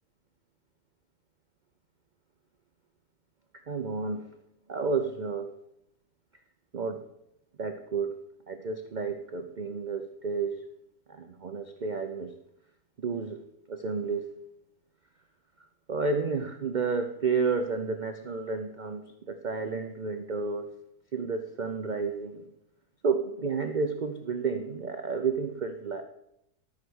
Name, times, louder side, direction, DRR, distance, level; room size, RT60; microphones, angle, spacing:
voice 1, 3.7-4.3 4.7-5.5 6.7-7.0 7.6-8.1 8.5-10.6 11.1-12.3 13.0-13.4 13.7-14.3 15.9-19.0 19.3-20.7 21.1-22.5 23.0-26.0, right 4 dB, 85° right, 6 dB, 0.4 m, -31 dB
13.0 x 4.7 x 6.3 m, 0.79 s
omnidirectional pair, 1.7 m